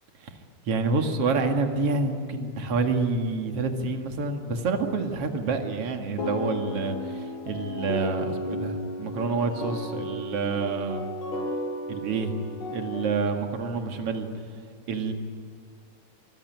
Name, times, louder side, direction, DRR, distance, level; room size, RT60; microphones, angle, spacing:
voice 1, 0.6-11.0 11.9-12.3 12.7-14.3 14.9-15.1, right 4 dB, 50° right, 5 dB, 1.7 m, -28 dB
sound 1, 6.2-13.0, left 1 dB, 55° left, 7.6 m, -33 dB
25.0 x 23.0 x 9.5 m, 2.3 s
omnidirectional pair, 5.9 m